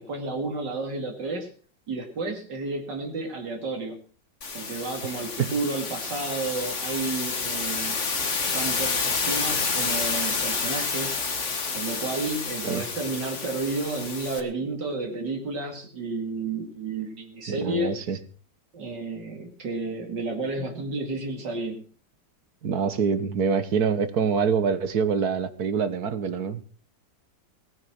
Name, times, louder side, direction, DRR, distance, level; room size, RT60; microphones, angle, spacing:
voice 1, 0.0-1.5 1.9-4.0 4.5-8.1 8.5-11.2 11.7-18.0 18.7-21.8, right 3 dB, 80° right, 2 dB, 3.0 m, -31 dB
sound 1, 4.4-14.4, left 4 dB, 45° left, 2.1 m, -29 dB
voice 2, 17.5-18.2 22.6-26.7, right 6 dB, 65° right, 12 dB, 1.8 m, -25 dB
18.5 x 9.6 x 6.1 m, 0.41 s
omnidirectional pair, 1.9 m